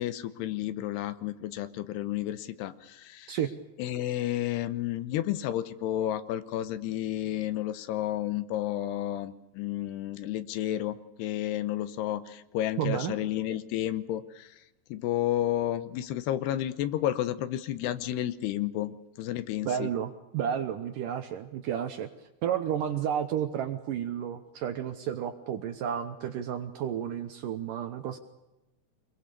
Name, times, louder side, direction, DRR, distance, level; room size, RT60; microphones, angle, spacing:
voice 1, 0.0-3.4 3.8-14.5 14.9-19.9, left 12 dB, 80° left, 13 dB, 3.0 m, -31 dB
voice 2, 12.8-13.2 19.6-22.1 22.4-28.2, right 9 dB, 70° right, 8 dB, 2.1 m, -31 dB
25.5 x 21.5 x 6.8 m, 0.95 s
omnidirectional pair, 4.9 m